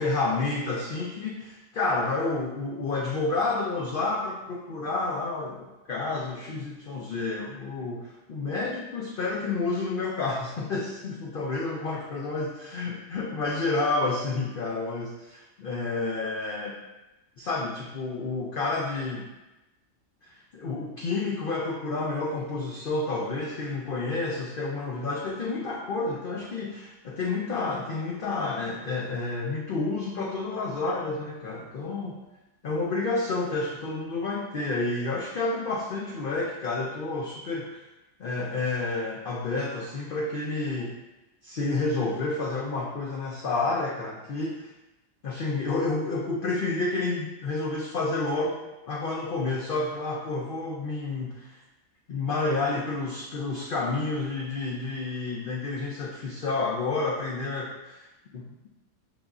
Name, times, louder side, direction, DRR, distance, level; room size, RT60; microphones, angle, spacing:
voice 1, 0.0-16.8 17.4-19.3 20.2-32.2 32.6-37.8 38.2-41.0 41.4-44.7 45.2-48.6 48.8-51.5 52.1-58.4, left 3 dB, 85° left, -3 dB, 0.4 m, -30 dB
5.8 x 2.5 x 2.3 m, 1.0 s
omnidirectional pair, 1.5 m